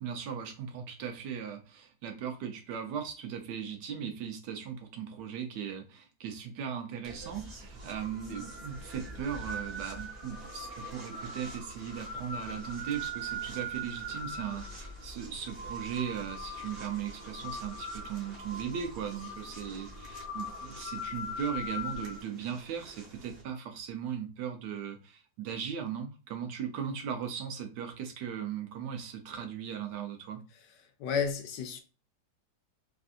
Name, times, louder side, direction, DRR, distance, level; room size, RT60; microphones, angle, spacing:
voice 1, 0.0-30.4, right 8 dB, 70° right, 1.2 m, -38 dB
sound 1, 7.0-23.4, equal, 40° right, 0.9 m, -41 dB
voice 2, 31.0-31.8, left 6 dB, 75° left, 1.2 m, -31 dB
3.5 x 2.6 x 2.4 m
omnidirectional pair, 2.0 m